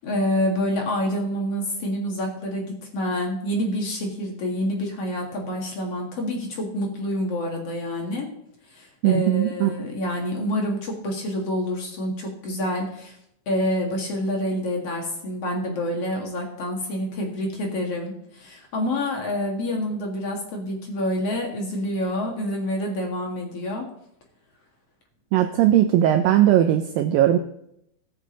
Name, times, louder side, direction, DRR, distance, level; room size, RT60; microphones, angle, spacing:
voice 1, 0.0-8.3 8.7-13.2 13.5-23.8, left 1 dB, 45° left, 0 dB, 2.3 m, -27 dB
voice 2, 9.0-9.7 25.3-27.4, right 12 dB, 85° right, 7 dB, 2.0 m, -18 dB
19.0 x 6.5 x 3.9 m, 0.76 s
omnidirectional pair, 4.8 m